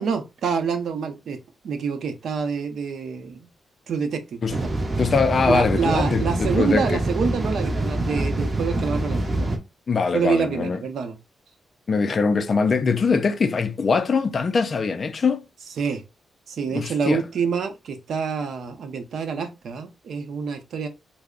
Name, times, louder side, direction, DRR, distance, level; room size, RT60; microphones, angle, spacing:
voice 1, 0.0-1.4 1.6-3.4 3.9-4.7 5.4-9.5 10.1-11.2 15.8-16.0 16.5-20.9, right 6 dB, 70° right, 0.6 m, -27 dB
sound 1, 4.5-9.6, right 1 dB, 25° right, 0.6 m, -25 dB
voice 2, 5.0-7.0 9.9-10.8 11.9-15.4 16.7-17.2, left 4 dB, 40° left, 0.3 m, -22 dB
3.3 x 2.0 x 3.7 m
wide cardioid pair, 150°, 0 cm